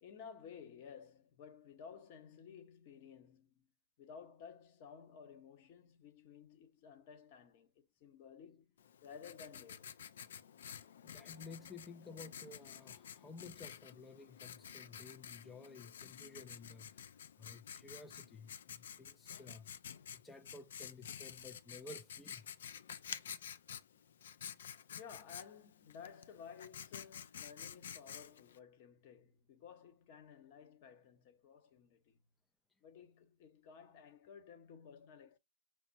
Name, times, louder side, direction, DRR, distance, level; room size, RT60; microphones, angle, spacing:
voice 1, 0.0-3.7 4.0-10.0 25.0-32.2 32.8-35.4, left 7 dB, 45° left, 1.0 m, -55 dB
Writing, 8.8-28.6, left 8 dB, 65° left, 0.5 m, -51 dB
voice 2, 11.0-19.7 20.1-22.5, left 3 dB, 10° left, 0.4 m, -54 dB
6.0 x 2.1 x 4.2 m
hypercardioid pair, 125°, 0 cm